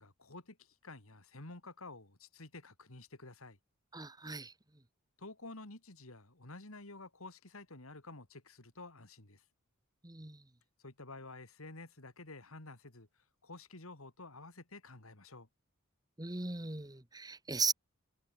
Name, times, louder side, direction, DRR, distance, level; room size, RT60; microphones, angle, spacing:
voice 1, 0.0-3.6 5.2-9.4 10.8-13.1 13.4-15.5, left 2 dB, 70° left, 3.2 m, -51 dB
voice 2, 3.9-4.5 10.0-10.4 16.2-17.7, right 4 dB, 20° right, 1.5 m, -37 dB
head